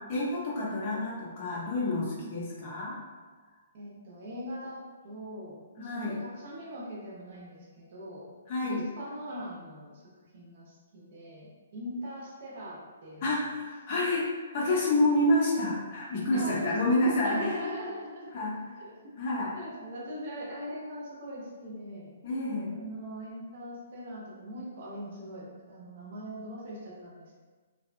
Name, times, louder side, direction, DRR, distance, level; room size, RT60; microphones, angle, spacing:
voice 1, 0.1-3.0 5.8-6.2 8.5-8.9 13.2-17.7 18.3-18.7 19.2-19.5 22.2-22.7, left 1 dB, 35° left, -4 dB, 0.6 m, -28 dB
voice 2, 3.7-8.3 8.6-9.9 10.3-13.3 16.3-18.9 19.5-22.1 22.7-27.4, equal, 45° right, -4 dB, 0.7 m, -41 dB
2.6 x 2.2 x 2.5 m, 1.4 s
hypercardioid pair, 170°, 0 cm